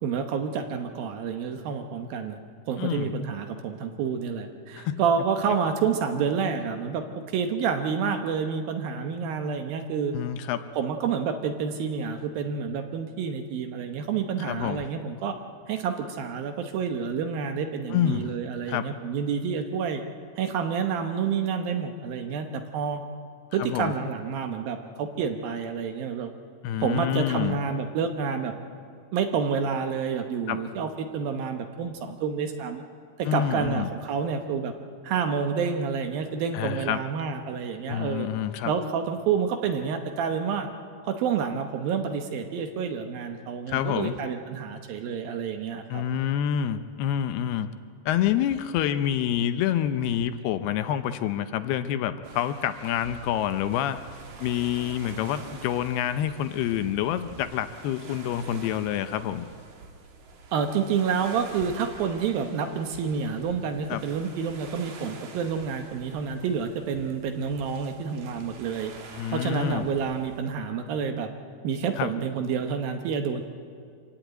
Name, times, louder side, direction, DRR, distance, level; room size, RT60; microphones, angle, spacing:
voice 1, 0.0-2.4 2.7-7.0 7.3-10.1 10.8-15.4 15.7-20.0 20.4-23.0 23.5-26.3 26.8-28.5 29.1-32.8 33.2-34.7 35.0-38.3 38.6-40.7 41.1-46.0 60.5-68.9 69.3-71.3 71.6-73.4, right 6 dB, 70° right, 6 dB, 2.6 m, -29 dB
voice 2, 2.8-3.1 4.8-5.0 5.4-5.6 10.1-10.6 14.4-14.8 17.9-18.3 18.7-18.9 23.6-23.9 26.6-27.6 30.5-30.6 33.3-33.9 36.5-37.0 37.9-38.7 43.7-44.2 45.9-47.7 48.1-54.0 54.4-59.5 63.9-64.0 69.1-69.8 72.0-72.1, left 10 dB, 80° left, 10 dB, 2.6 m, -27 dB
sound 1, 52.2-70.4, right 4 dB, 55° right, 2.7 m, -46 dB
25.5 x 16.0 x 9.1 m, 2.3 s
omnidirectional pair, 4.8 m